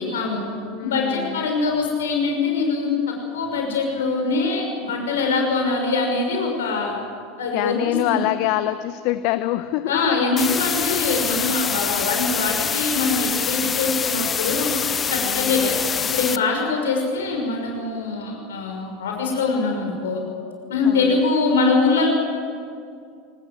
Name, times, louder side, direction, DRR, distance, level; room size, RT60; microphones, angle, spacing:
voice 1, 0.0-0.5 0.8-2.9 3.3-6.9 7.4-8.2 9.9-14.7 15.1-15.7 16.1-20.2 20.7-22.1, left 4 dB, 70° left, 2 dB, 6.1 m, -23 dB
voice 2, 0.6-1.5 7.5-10.2 10.9-11.1 15.2-15.8 20.8-21.2, left 15 dB, 55° left, 13 dB, 0.8 m, -26 dB
sound 1, 10.4-16.4, left 7 dB, 25° left, 0.7 m, -25 dB
23.5 x 20.0 x 7.8 m, 2.3 s
figure-of-eight pair, 80°, 0 cm